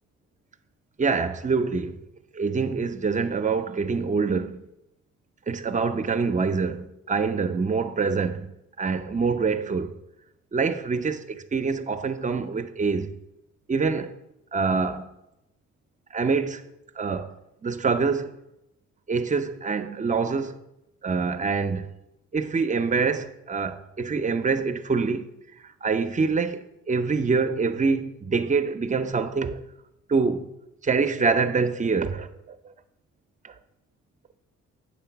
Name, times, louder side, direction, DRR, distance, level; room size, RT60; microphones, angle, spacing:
voice 1, 1.0-2.0 2.3-4.6 5.5-9.9 10.5-13.1 13.7-14.1 14.5-15.1 16.1-16.6 17.0-17.4 17.6-18.3 19.1-20.6 21.0-21.9 22.3-25.3 25.6-29.6 30.1-30.5 30.8-32.6 33.4-33.5, right 4 dB, 25° right, 0.5 m, -25 dB
8.5 x 3.7 x 5.8 m
cardioid pair, 90°, 30 cm